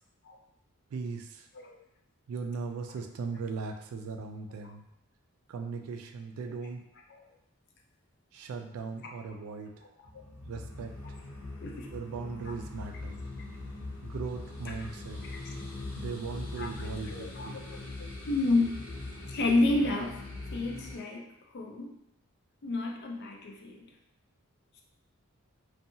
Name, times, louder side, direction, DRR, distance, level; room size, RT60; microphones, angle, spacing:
voice 1, 0.9-1.5 2.3-4.8 5.5-6.9 8.3-9.7 10.4-11.0 11.9-13.2 14.0-15.2 16.0-17.6, right 4 dB, 75° right, 5 dB, 0.3 m, -38 dB
sound 1, 10.0-21.0, left 2 dB, 70° left, 0.8 m, -41 dB
voice 2, 17.0-17.6 18.0-18.7 19.3-20.2 20.5-21.9 22.6-23.9, left 2 dB, 50° left, 1 dB, 0.4 m, -30 dB
2.7 x 2.3 x 2.7 m, 0.81 s
head